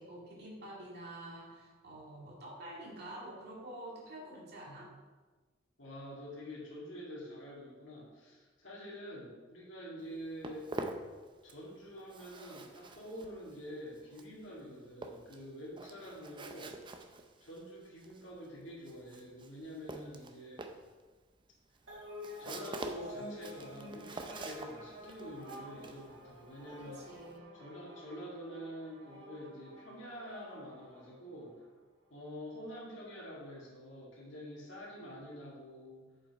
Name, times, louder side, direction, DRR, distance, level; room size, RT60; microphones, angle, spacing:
voice 1, 0.0-4.9 26.8-27.5, right 1 dB, 55° right, -4 dB, 2.2 m, -48 dB
voice 2, 5.8-10.7 11.4-16.7 17.4-20.6 22.4-27.0 27.5-31.7 32.1-36.0, equal, 70° left, -6 dB, 2.1 m, -47 dB
Walk footsteps, 10.0-11.7 12.0-27.4, right 2 dB, 25° right, 0.5 m, -47 dB
sound 1, 21.9-31.7, left 1 dB, 70° right, 1.8 m, -50 dB
7.3 x 5.3 x 4.7 m, 1.3 s
head